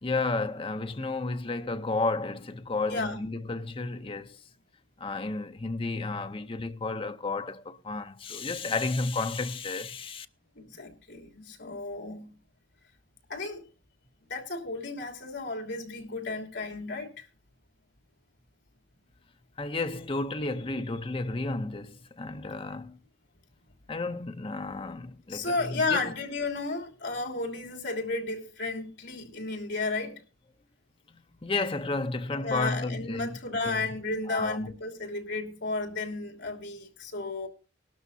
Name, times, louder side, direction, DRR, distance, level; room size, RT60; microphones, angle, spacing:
voice 1, 0.0-4.4 5.0-10.3 19.6-23.0 23.9-26.1 31.4-33.4 33.6-33.9 34.3-34.7, left 3 dB, 25° left, 0.6 m, -32 dB
voice 2, 10.5-12.3 13.3-13.6 14.3-17.3 25.3-30.2 32.3-37.5, left 3 dB, 65° left, 3.1 m, -33 dB
19.0 x 12.5 x 2.7 m
head